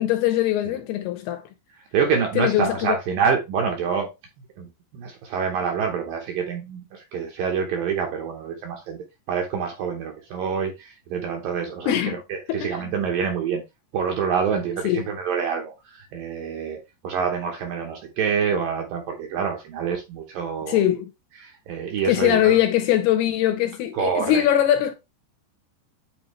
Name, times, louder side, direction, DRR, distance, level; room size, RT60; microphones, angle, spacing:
voice 1, 0.0-1.4 2.4-3.0 11.9-12.2 12.5-12.9 14.8-15.0 20.7-21.1 22.0-24.9, left 12 dB, 80° left, 2.5 m, -21 dB
voice 2, 1.9-4.1 4.6-4.7 4.9-13.6 13.9-20.8 21.4-22.6 23.9-24.4, right 6 dB, 70° right, 2.1 m, -26 dB
8.7 x 4.1 x 3.1 m
omnidirectional pair, 5.1 m